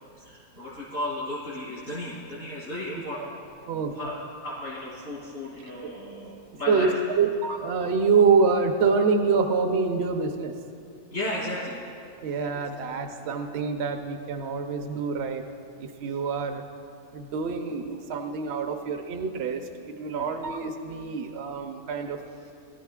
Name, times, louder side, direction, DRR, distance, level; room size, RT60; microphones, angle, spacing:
voice 1, 0.2-3.3 3.9-6.9 11.1-11.9 20.1-20.4, left 1 dB, 75° left, -10 dB, 3.7 m, -34 dB
voice 2, 6.7-10.5 12.2-15.4 15.8-16.6 17.1-22.2, right 5 dB, 60° right, 5 dB, 0.9 m, -26 dB
23.5 x 13.0 x 2.4 m, 2.4 s
omnidirectional pair, 1.4 m